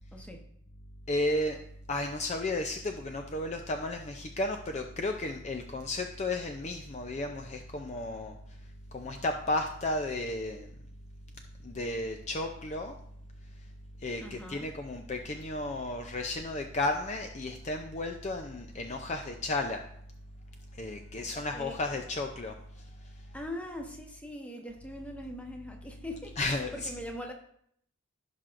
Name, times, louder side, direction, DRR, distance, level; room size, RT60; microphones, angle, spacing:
voice 1, 0.1-0.4 14.2-14.7 21.2-21.8 23.3-27.3, left 1 dB, 5° left, 2 dB, 0.9 m, -42 dB
voice 2, 1.1-1.6 1.9-8.3 8.9-10.7 11.6-12.9 14.0-19.8 20.8-22.5 26.4-26.9, left 2 dB, 30° left, 4 dB, 0.5 m, -33 dB
15.5 x 5.8 x 2.5 m, 0.69 s
head